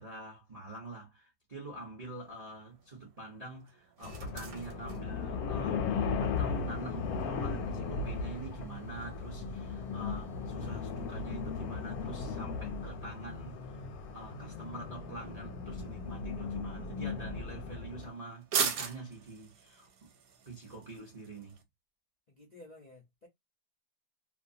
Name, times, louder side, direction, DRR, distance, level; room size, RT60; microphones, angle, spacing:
voice 1, 0.0-5.9 6.2-13.8 14.1-20.1 20.5-21.6, right 2 dB, 40° right, 0.5 m, -46 dB
sound 1, 2.0-21.6, right 7 dB, 70° right, 1.0 m, -44 dB
sound 2, 4.0-18.1, left 5 dB, 70° left, 1.0 m, -37 dB
voice 2, 22.3-23.3, left 2 dB, 45° left, 0.5 m, -53 dB
2.7 x 2.1 x 2.6 m
omnidirectional pair, 1.8 m